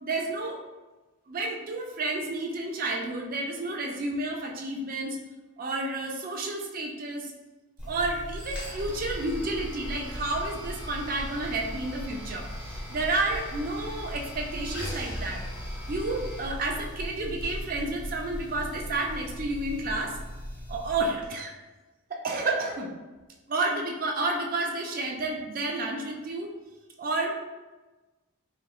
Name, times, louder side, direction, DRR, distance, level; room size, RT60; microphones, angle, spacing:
voice 1, 0.0-0.6 1.3-5.2 5.6-7.3 7.9-15.4 15.9-20.2 20.7-21.5 22.1-22.9 23.5-26.5 27.0-27.3, right 2 dB, 40° right, 1 dB, 0.3 m, -31 dB
sound 1, 7.8-21.3, equal, 5° right, 0.9 m, -37 dB
3.0 x 3.0 x 2.3 m, 1.2 s
head